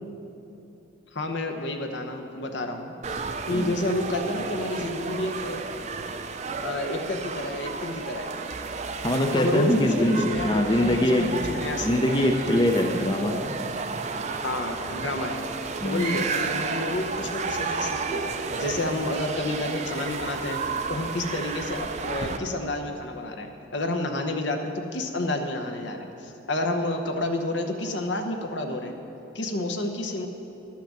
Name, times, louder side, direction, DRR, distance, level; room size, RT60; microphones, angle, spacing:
voice 1, 1.1-3.2 3.5-5.6 6.6-8.3 9.4-12.3 14.4-15.4 15.8-18.3 18.6-20.6 20.9-29.0 29.3-30.3, left 1 dB, 65° left, 5 dB, 0.9 m, -30 dB
sound 1, 3.0-22.4, right 4 dB, 35° right, 0.5 m, -32 dB
voice 2, 9.0-11.3 11.8-13.5 15.8-16.2, left 1 dB, 25° left, 2 dB, 0.5 m, -23 dB
11.5 x 5.8 x 7.4 m, 3.0 s
head